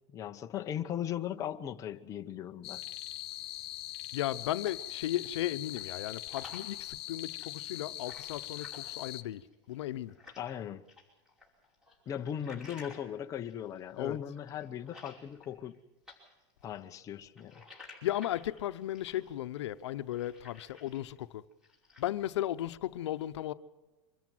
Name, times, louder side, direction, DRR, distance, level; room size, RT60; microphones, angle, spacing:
voice 1, 0.1-2.8 10.4-10.8 12.1-15.8 16.6-17.6, left 9 dB, 25° left, 0.8 m, -38 dB
sound 1, 2.6-9.2, left 14 dB, 65° left, 1.1 m, -42 dB
voice 2, 4.1-10.1 14.0-14.2 18.0-21.4 22.0-23.5, left 13 dB, 85° left, 0.9 m, -35 dB
sound 2, 4.4-5.4 5.7-10.6 10.9-15.8 16.0-21.2 21.5-22.2, left 3 dB, 5° right, 5.4 m, -54 dB
25.0 x 13.5 x 7.8 m
supercardioid pair, 150°, 14 cm